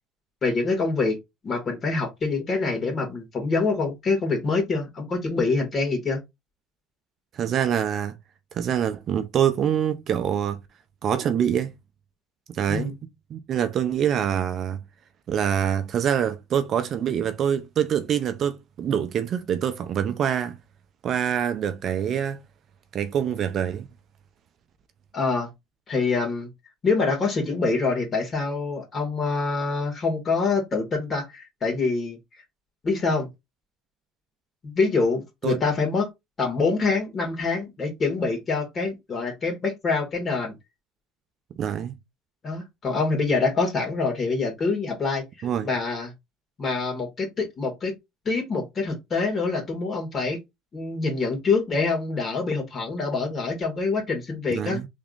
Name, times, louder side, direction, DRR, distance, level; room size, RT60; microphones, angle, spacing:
voice 1, 0.4-6.2 12.7-13.0 25.1-25.5 25.9-26.5 26.8-32.2 32.8-33.3 34.6-36.1 36.4-40.5 42.4-46.1 46.6-48.0 48.3-50.4 50.7-54.8, left 4 dB, 35° left, 1.9 m, -25 dB
voice 2, 7.3-8.1 8.5-10.6 11.0-11.7 12.5-12.9 13.3-14.8 15.3-20.6 21.0-22.4 22.9-23.9 35.4-35.6 41.6-42.0 45.4-45.7 54.5-54.9, right 9 dB, 50° right, 0.5 m, -25 dB
3.5 x 3.4 x 2.5 m
supercardioid pair, 100°, 0 cm